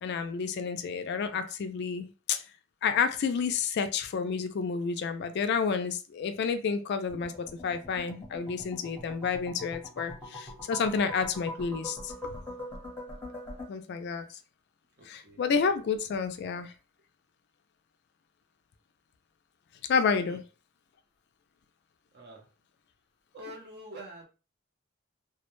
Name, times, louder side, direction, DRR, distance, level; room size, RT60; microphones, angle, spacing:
voice 1, 0.0-2.4 2.8-12.1 13.7-14.2 15.0-16.7 19.9-20.4, left 5 dB, 55° left, 9 dB, 0.3 m, -30 dB
sound 1, 7.1-13.7, left 1 dB, 10° left, 0.8 m, -43 dB
voice 2, 15.0-15.4 20.2-20.4 22.1-22.5 23.3-24.3, right 1 dB, 50° right, 1 dB, 0.7 m, -46 dB
2.2 x 2.1 x 3.0 m, 0.33 s
head